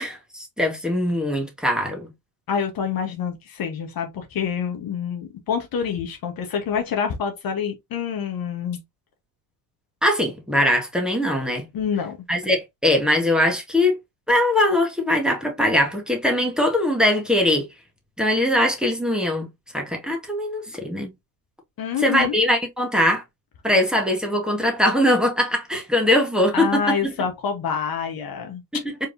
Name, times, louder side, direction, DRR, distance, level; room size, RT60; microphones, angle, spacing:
voice 1, 0.0-2.1 10.0-11.7 12.3-14.0 14.3-17.7 18.2-19.5 19.7-21.1 22.0-23.2 23.6-27.1, left 1 dB, ahead, 1.8 m, -21 dB
voice 2, 2.5-8.8 11.7-12.2 21.8-22.4 26.5-28.6, left 7 dB, 45° left, 1.4 m, -27 dB
4.7 x 3.4 x 2.7 m
hypercardioid pair, 60°, 48 cm